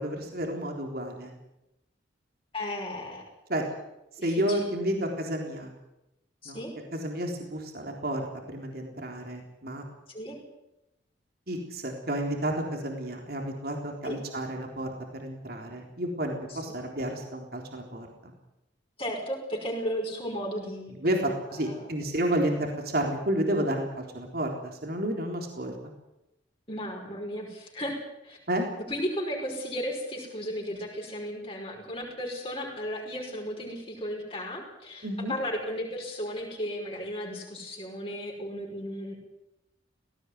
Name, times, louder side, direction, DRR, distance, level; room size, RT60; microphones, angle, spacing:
voice 1, 0.0-1.3 3.5-3.6 4.2-5.7 6.5-6.6 6.9-8.2 8.5-9.8 11.5-14.9 15.2-18.3 21.0-25.7 28.5-28.7 35.0-35.3, right 1 dB, 55° right, 2 dB, 3.8 m, -31 dB
voice 2, 2.5-3.2 4.2-4.6 6.4-6.7 10.1-10.4 14.0-14.2 16.5-16.6 19.0-21.9 26.7-28.4 28.9-39.2, equal, 30° left, -1 dB, 5.5 m, -35 dB
18.0 x 17.5 x 9.5 m, 0.91 s
head